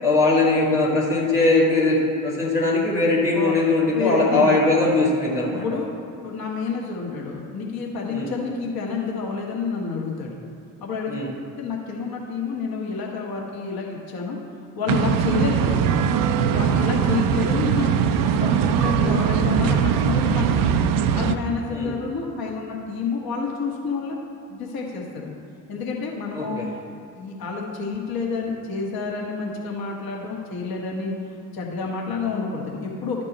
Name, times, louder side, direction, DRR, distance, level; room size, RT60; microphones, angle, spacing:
voice 1, 0.0-5.6 8.1-8.3 11.1-11.3 15.4-15.5 17.1-17.2 21.7-21.9 26.3-26.7, left 2 dB, 85° left, -7 dB, 1.8 m, -20 dB
voice 2, 3.8-4.5 5.5-5.9 6.2-10.4 10.8-11.2 11.6-14.4 14.8-15.9 16.5-18.0 18.3-20.9 21.1-24.2 24.5-25.4 25.7-26.6 27.1-31.1 31.5-33.2, left 4 dB, 50° left, -1 dB, 1.7 m, -29 dB
sound 1, 14.9-21.3, right 7 dB, 50° right, 0.6 m, -21 dB
12.0 x 5.3 x 4.2 m, 2.7 s
hypercardioid pair, 50°, 45 cm